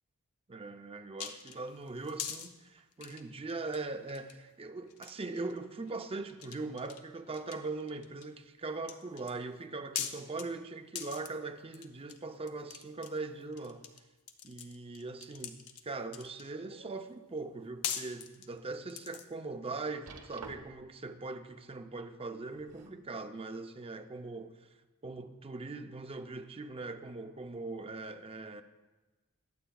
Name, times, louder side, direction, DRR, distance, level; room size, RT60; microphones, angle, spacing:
voice 1, 0.5-13.8 14.4-24.5 25.0-28.6, right 3 dB, 25° right, 7 dB, 0.6 m, -41 dB
sound 1, 1.2-2.5 2.9-3.8 4.1-4.4 4.9-5.6 5.9-6.0 6.3-7.0 7.3-8.3 8.8-9.3 10.0-10.5 11.0-11.3 11.7-12.2 12.5-14.0 14.3-16.5 17.4-17.5 17.8-19.3, left 8 dB, 75° left, 0.8 m, -41 dB
sound 2, 16.2-17.0 17.5-17.6 18.2-18.3 20.1-21.0 22.3-23.1 24.0-24.1, right 4 dB, 90° right, 1.0 m, -51 dB
21.5 x 8.0 x 2.3 m, 1.2 s
head